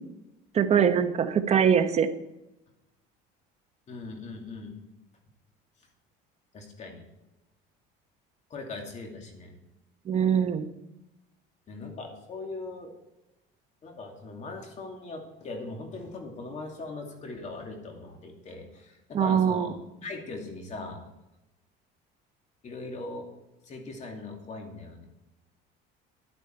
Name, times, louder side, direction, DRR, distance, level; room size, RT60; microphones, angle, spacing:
voice 1, 0.5-2.1 10.1-10.6 19.1-19.7, right 8 dB, 35° right, 8 dB, 1.0 m, -23 dB
voice 2, 3.9-4.7 6.5-7.1 8.5-9.6 11.7-12.9 13.8-21.0 22.6-23.3 23.6-25.1, left 3 dB, 35° left, 2 dB, 2.4 m, -40 dB
10.5 x 9.7 x 4.4 m, 0.95 s
cardioid pair, 135°, 20 cm